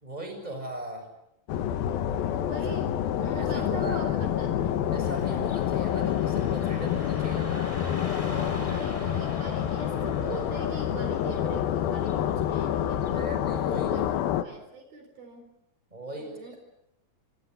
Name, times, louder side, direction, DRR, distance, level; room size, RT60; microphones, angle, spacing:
voice 1, 0.0-1.1 3.2-4.0 4.9-7.7 13.1-14.2 15.9-16.6, right 1 dB, 10° right, 5 dB, 6.6 m, -38 dB
sound 1, 1.5-14.4, left 10 dB, 70° left, 2.8 m, -28 dB
voice 2, 2.3-4.9 8.4-13.3 13.7-15.5 16.2-16.6, right 3 dB, 65° right, 6 dB, 5.7 m, -41 dB
Car passing by / Traffic noise roadway noise, 5.0-14.1, left 1 dB, 10° left, 3.3 m, -44 dB
26.0 x 26.0 x 8.1 m, 0.80 s
omnidirectional pair, 4.7 m